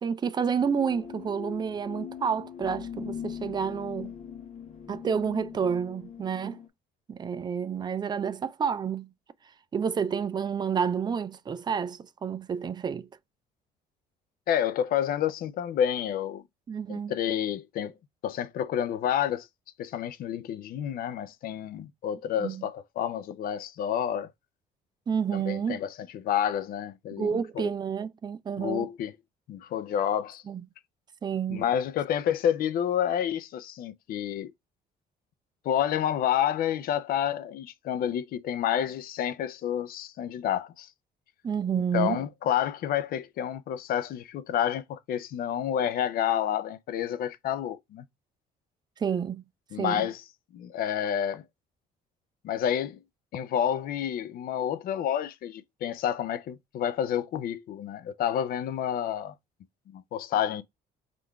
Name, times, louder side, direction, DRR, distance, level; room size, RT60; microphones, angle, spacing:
voice 1, 0.0-4.1 4.9-6.6 7.1-9.1 9.7-13.1 16.7-17.1 22.4-22.7 25.1-25.8 27.2-28.9 30.5-30.6 31.2-31.6 41.4-42.2 49.0-49.4 49.8-50.1, right 7 dB, 25° right, 0.4 m, -29 dB
sound 1, 0.6-6.7, left 7 dB, 35° left, 1.1 m, -41 dB
voice 2, 14.5-16.4 16.9-17.9 18.2-19.5 19.8-24.3 25.3-27.7 28.6-29.1 29.5-30.4 31.5-34.5 35.6-40.9 41.9-48.0 49.7-50.2 50.5-51.4 52.4-53.0 53.3-59.3 59.9-60.6, left 9 dB, 60° left, 0.5 m, -29 dB
3.6 x 2.5 x 4.5 m
cardioid pair, 110°, 17 cm